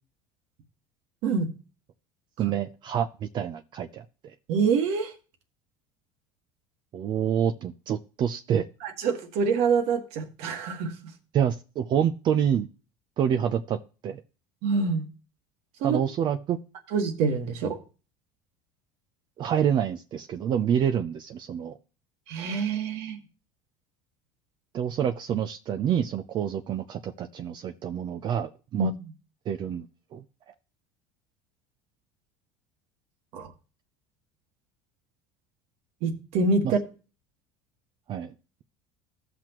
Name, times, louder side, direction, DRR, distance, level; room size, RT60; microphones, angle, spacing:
voice 1, 2.4-4.0 6.9-8.6 11.3-12.7 13.2-14.2 15.8-16.6 19.4-21.7 24.7-28.9 29.5-29.9 30.1-30.2 36.6-36.7 38.1-38.3, right 9 dB, 45° right, 0.6 m, -27 dB
voice 2, 4.5-5.1 8.8-11.1 14.6-15.0 15.8-16.0 16.9-17.8 22.3-23.2 28.7-29.1 33.3-33.5 36.0-36.8, right 4 dB, 70° right, 1.7 m, -26 dB
15.5 x 5.9 x 3.0 m
supercardioid pair, 110°, 11 cm